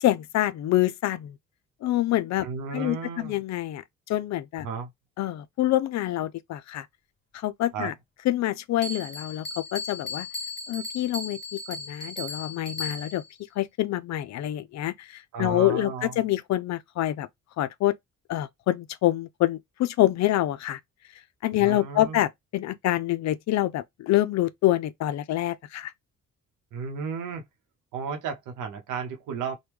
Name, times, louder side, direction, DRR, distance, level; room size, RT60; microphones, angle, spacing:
voice 1, 0.0-1.4 1.8-2.5 2.7-4.7 5.2-6.9 7.3-7.9 8.3-10.3 10.7-13.2 13.6-17.3 17.6-17.9 18.3-20.8 21.4-25.9, left 14 dB, 65° left, 0.4 m, -26 dB
voice 2, 2.4-3.4 4.6-4.9 7.7-7.9 15.3-16.2 21.6-22.2 26.7-27.4 27.9-29.6, right 5 dB, 85° right, 0.8 m, -33 dB
Bell, 8.8-13.3, left 2 dB, 35° left, 0.9 m, -36 dB
3.0 x 2.2 x 3.4 m
cardioid pair, 90°, 30 cm